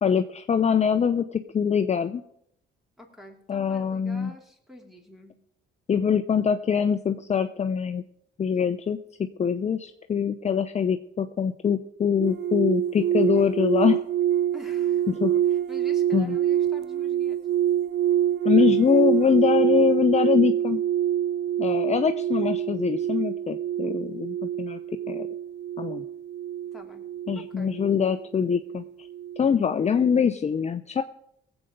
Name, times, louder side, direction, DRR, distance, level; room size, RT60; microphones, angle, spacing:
voice 1, 0.0-2.2 3.5-4.3 5.9-8.0 8.4-9.0 9.4-14.0 15.2-15.3 16.1-16.4 18.4-20.8 21.6-24.8 25.1-25.3 25.8-26.0 27.3-28.8 29.4-31.0, left 7 dB, 35° left, 8 dB, 0.6 m, -23 dB
voice 2, 3.0-5.4 14.5-17.4 26.7-27.1 27.3-27.7, left 1 dB, ahead, 2 dB, 2.9 m, -47 dB
sound 1, 12.2-29.5 29.8-30.2, right 11 dB, 60° right, 0.7 m, -26 dB
19.0 x 8.0 x 5.2 m, 0.74 s
cardioid pair, 90°, 20 cm